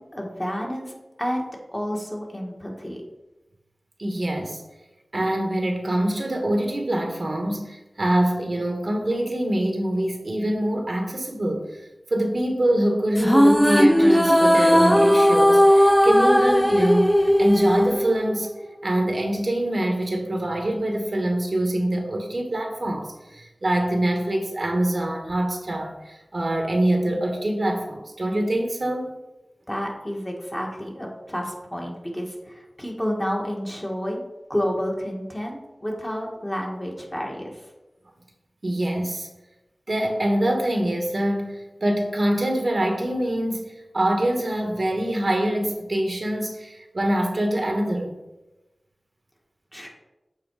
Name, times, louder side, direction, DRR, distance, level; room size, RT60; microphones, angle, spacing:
voice 1, 0.0-1.5 1.7-3.0 29.7-34.2 34.5-37.7 49.7-49.9, equal, 20° left, 1.7 m, -30 dB
voice 2, 4.0-4.6 5.1-18.5 18.8-29.1 38.6-39.3 39.9-48.2, right 1 dB, 55° right, 1.2 m, -24 dB
sound 1, 13.2-18.6, equal, ahead, 0.4 m, -17 dB
7.4 x 4.4 x 4.8 m
wide cardioid pair, 55°, 0 cm